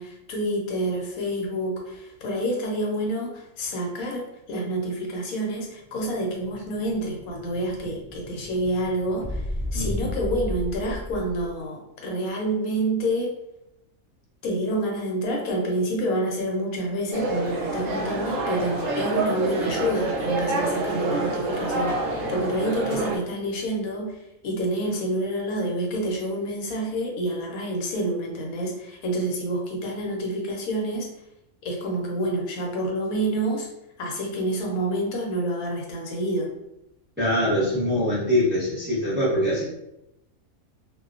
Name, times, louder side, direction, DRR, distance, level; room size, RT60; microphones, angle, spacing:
voice 1, 0.0-13.3 14.4-24.2 24.4-31.1 31.6-33.7 34.0-36.5, right 1 dB, 80° left, 0 dB, 1.1 m, -28 dB
Explosion, 5.5-11.6, left 1 dB, 30° left, 0.7 m, -35 dB
voice 2, 9.7-10.1 37.2-39.6, left 1 dB, 10° right, -9 dB, 0.8 m, -23 dB
sound 1, 17.1-23.2, right 2 dB, 70° right, 0.9 m, -27 dB
2.4 x 2.2 x 2.4 m, 0.84 s
omnidirectional pair, 1.5 m